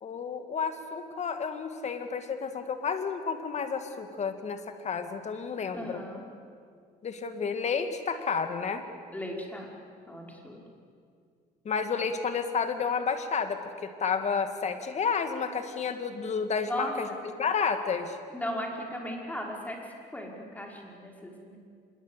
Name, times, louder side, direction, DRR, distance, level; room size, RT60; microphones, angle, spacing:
voice 1, 0.0-6.0 7.0-8.8 11.6-17.1 17.4-18.2, left 5 dB, 40° left, 8 dB, 2.5 m, -31 dB
voice 2, 5.7-6.2 9.1-9.7 10.1-10.6 16.7-17.2 18.3-19.8 20.1-21.6, left 1 dB, 10° left, 0 dB, 5.5 m, -36 dB
26.0 x 22.0 x 8.4 m, 2.2 s
cardioid pair, 110°, 17 cm